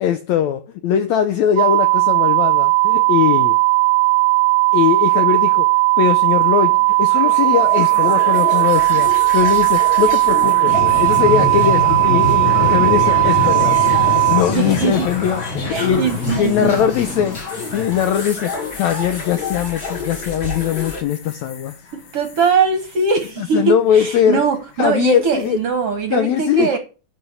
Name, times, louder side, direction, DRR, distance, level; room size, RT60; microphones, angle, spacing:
voice 1, 0.0-3.6 4.7-5.7 6.0-13.8 14.3-21.8 23.4-24.4 24.8-25.6 26.1-26.8, left 9 dB, 80° left, 1.6 m, -20 dB
sound 1, 1.6-14.4, right 22 dB, 80° right, 1.5 m, -16 dB
sound 2, 6.0-21.0, left 3 dB, 30° left, 2.1 m, -28 dB
sound 3, 10.7-22.5 22.9-23.3 25.2-25.6, left 5 dB, 55° left, 2.3 m, -28 dB
voice 2, 14.5-15.1 15.7-16.8 22.1-26.8, right 5 dB, 60° right, 1.6 m, -20 dB
11.0 x 4.5 x 8.0 m
omnidirectional pair, 3.9 m